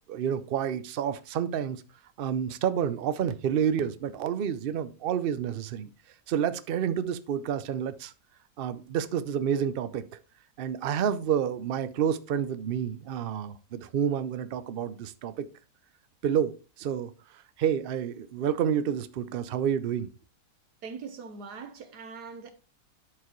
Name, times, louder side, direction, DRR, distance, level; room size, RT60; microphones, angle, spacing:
voice 1, 0.1-1.8 2.2-5.9 6.3-8.1 8.6-10.0 10.6-15.5 16.2-17.1 17.6-20.1, right 8 dB, 65° right, 0.5 m, -29 dB
voice 2, 20.8-22.5, right 5 dB, 90° right, 1.6 m, -41 dB
11.5 x 4.8 x 3.0 m
omnidirectional pair, 1.7 m